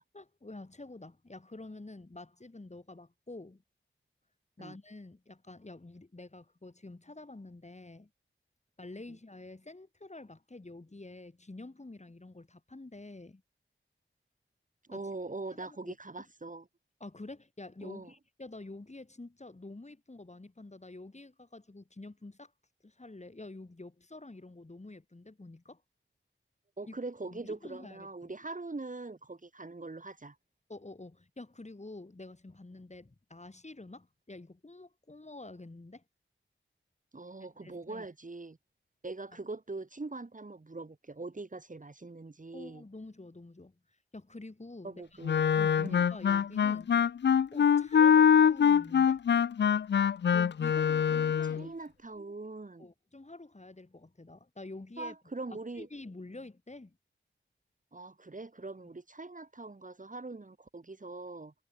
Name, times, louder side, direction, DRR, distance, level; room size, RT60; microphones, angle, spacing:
voice 1, 0.1-3.6 4.6-8.1 8.8-13.4 14.9-15.0 15.5-15.9 17.0-22.5 22.8-25.8 26.9-27.0 27.3-28.3 30.7-36.0 37.6-38.1 42.5-43.8 44.1-45.0 45.5-47.0 47.5-49.2 50.3-51.7 52.8-55.1 55.8-57.0, left 2 dB, 35° left, 4.3 m, -48 dB
voice 2, 14.9-16.6 17.8-18.1 26.8-30.4 37.1-38.6 39.0-42.8 44.8-45.4 45.8-46.0 51.1-52.9 55.0-55.9 57.9-61.5, right 3 dB, 40° right, 2.0 m, -42 dB
Wind instrument woodwind instrument, 45.2-51.6, left 8 dB, 60° left, 0.4 m, -24 dB
wide cardioid pair, 70°, 21 cm